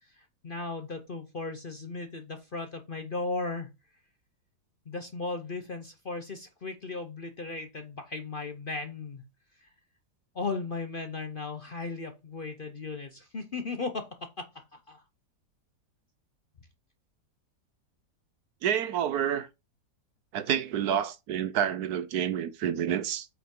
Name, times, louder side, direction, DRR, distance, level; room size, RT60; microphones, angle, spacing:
voice 1, 0.0-3.7 4.9-9.2 9.6-9.7 10.3-15.0, left 3 dB, 45° left, 0.7 m, -36 dB
voice 2, 18.6-19.5 20.3-23.3, right 9 dB, 70° right, 1.2 m, -28 dB
8.1 x 5.2 x 3.7 m
omnidirectional pair, 1.8 m